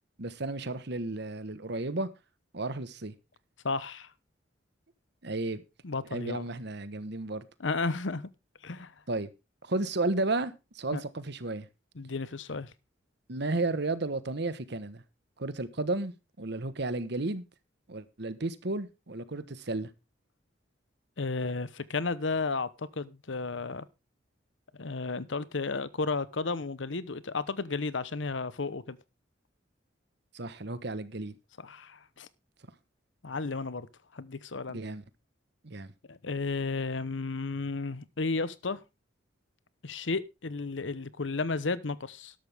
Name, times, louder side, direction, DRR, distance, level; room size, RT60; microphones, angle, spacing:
voice 1, 0.2-2.1 2.5-3.1 5.2-5.6 6.1-7.4 9.1-9.3 9.6-11.7 13.3-15.0 15.4-17.4 17.9-19.9 30.3-31.3 34.7-35.0 35.6-35.9, right 2 dB, 60° right, 1.2 m, -33 dB
voice 2, 3.6-4.1 5.8-6.5 7.6-8.3 8.6-8.9 10.9-11.0 12.0-12.7 21.2-23.9 24.7-29.0 31.6-32.3 33.2-33.9 34.1-34.8 36.1-38.8 39.8-42.3, left 3 dB, 75° left, 0.9 m, -33 dB
13.0 x 11.5 x 3.5 m
head